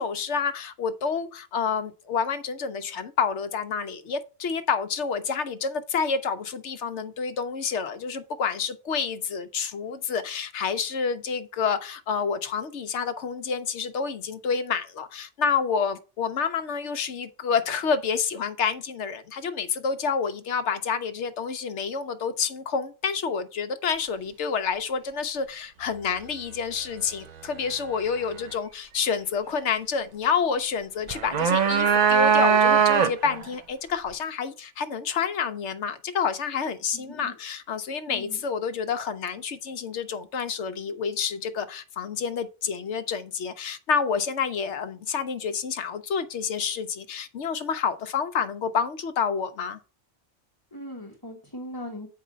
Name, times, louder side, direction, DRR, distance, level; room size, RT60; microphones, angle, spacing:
voice 1, 0.0-49.8, left 6 dB, 70° left, 1.0 m, -28 dB
sound 1, 31.1-33.4, right 7 dB, 50° right, 0.5 m, -20 dB
voice 2, 36.9-37.3 38.1-38.4 50.7-52.1, left 1 dB, 20° left, 1.4 m, -39 dB
8.5 x 4.7 x 5.1 m
omnidirectional pair, 1.2 m